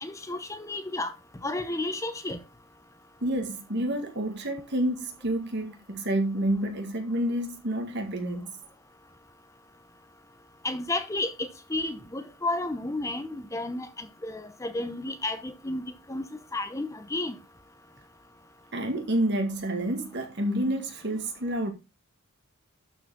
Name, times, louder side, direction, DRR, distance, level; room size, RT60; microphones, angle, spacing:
voice 1, 0.0-1.1 1.4-2.4 10.6-15.8 16.1-16.3 16.5-17.3, left 2 dB, 15° left, 0.7 m, -32 dB
voice 2, 3.2-8.5 18.7-21.7, right 1 dB, 55° right, 1.9 m, -29 dB
12.0 x 4.9 x 3.7 m
head